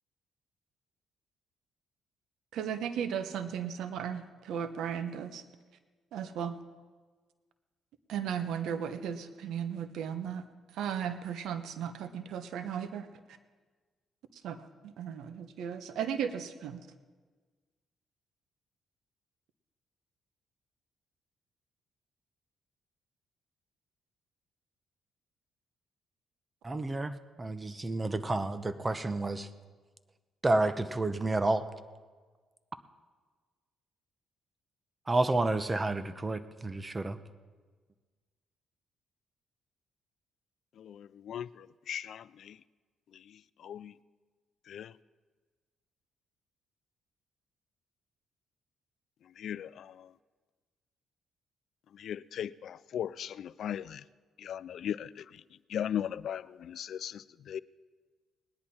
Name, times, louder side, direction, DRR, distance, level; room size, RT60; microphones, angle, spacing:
voice 1, 2.5-5.4 6.1-6.6 8.1-10.4 10.7-13.1 14.3-14.6 14.8-16.8, right 8 dB, 80° right, 1.0 m, -35 dB
voice 2, 26.6-29.5 30.4-31.7 35.1-37.2, right 2 dB, 20° right, 0.9 m, -30 dB
voice 3, 40.8-41.5 41.9-42.5 43.6-43.9 44.7-44.9 49.4-49.9 52.0-54.0 54.4-55.1 55.7-57.6, left 9 dB, 65° left, 0.3 m, -37 dB
20.0 x 10.5 x 4.3 m
cardioid pair, 90°, 0 cm